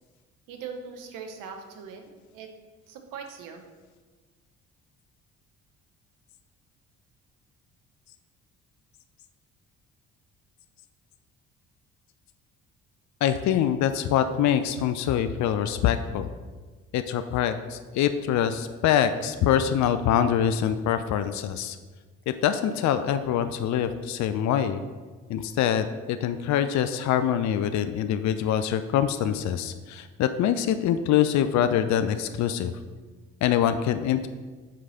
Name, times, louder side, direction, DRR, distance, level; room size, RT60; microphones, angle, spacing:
voice 1, 0.5-2.0 2.3-2.5 2.9-3.6, right 6 dB, 75° right, 5 dB, 1.1 m, -40 dB
voice 2, 13.2-16.3 16.9-21.8 22.3-24.8 25.3-32.7 33.4-34.3, left 9 dB, 60° left, 10 dB, 0.5 m, -24 dB
5.9 x 4.8 x 5.6 m, 1.3 s
hypercardioid pair, 55°, 33 cm